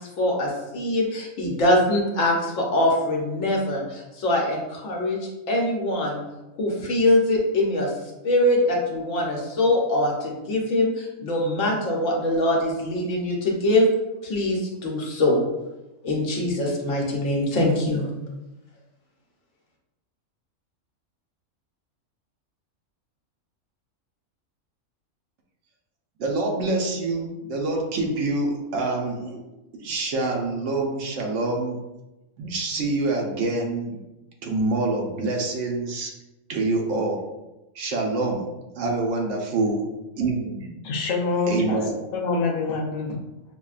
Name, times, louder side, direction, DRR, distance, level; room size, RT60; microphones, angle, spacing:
voice 1, 0.2-5.2 5.5-6.2 6.6-7.9 8.2-13.9 14.2-15.4 16.0-18.1, left 1 dB, 75° left, -1 dB, 1.2 m, -23 dB
voice 2, 26.2-29.4 29.8-31.8 32.4-34.0 34.4-36.1 36.5-37.2 37.7-38.5 38.7-39.8 40.2-40.7 41.5-41.9, right 2 dB, 70° right, 0 dB, 1.0 m, -26 dB
voice 3, 40.8-41.8 42.1-43.2, left 3 dB, 50° left, -1 dB, 0.6 m, -25 dB
5.4 x 2.1 x 2.4 m, 0.99 s
omnidirectional pair, 1.4 m